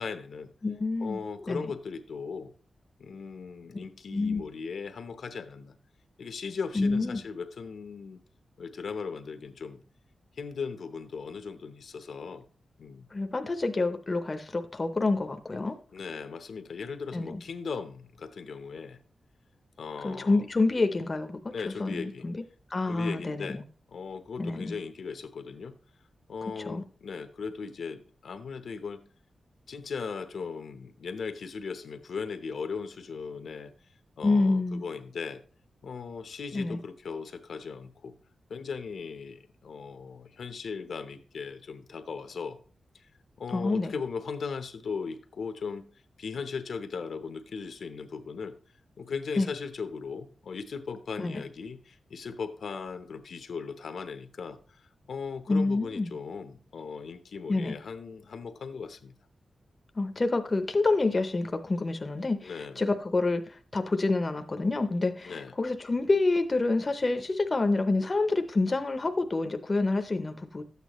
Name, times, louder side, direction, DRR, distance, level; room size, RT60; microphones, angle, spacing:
voice 1, 0.0-0.5 1.0-2.5 3.0-5.7 6.2-8.2 8.6-9.8 10.3-12.4 12.8-13.1 15.9-19.0 19.8-20.5 21.5-22.3 22.9-23.6 23.9-25.7 26.3-29.0 29.7-33.7 34.2-35.4 35.8-38.1 38.5-42.6 42.9-43.1 43.4-48.6 49.0-59.1 62.4-62.8 65.2-65.5, left 5 dB, 70° left, 0.8 m, -38 dB
voice 2, 0.6-1.2 1.5-1.7 4.1-4.4 6.7-7.2 13.1-15.8 17.1-17.4 20.0-21.5 21.8-22.4 22.7-23.6 24.4-24.7 26.6-26.8 34.2-34.8 36.5-36.8 43.5-43.9 49.4-49.5 51.2-51.4 55.5-56.1 57.5-57.8 59.9-70.6, left 3 dB, 30° left, 0.7 m, -27 dB
12.5 x 8.2 x 3.0 m
wide cardioid pair, 150°, 0 cm